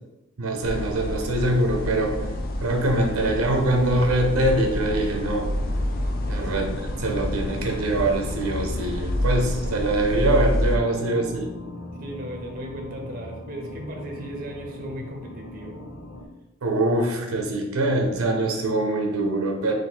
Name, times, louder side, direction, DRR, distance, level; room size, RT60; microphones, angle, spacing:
voice 1, 0.4-2.2 2.6-5.5 6.3-6.7 7.0-11.5 16.6-19.7, right 1 dB, 85° right, 2 dB, 0.6 m, -23 dB
sound 1, 0.6-10.8, left 1 dB, 40° left, 0.4 m, -28 dB
sound 2, 4.1-16.3, left 1 dB, 90° left, 0.7 m, -40 dB
voice 2, 12.0-15.8, right 1 dB, 40° right, 0 dB, 0.7 m, -36 dB
3.6 x 2.6 x 4.1 m, 0.98 s
head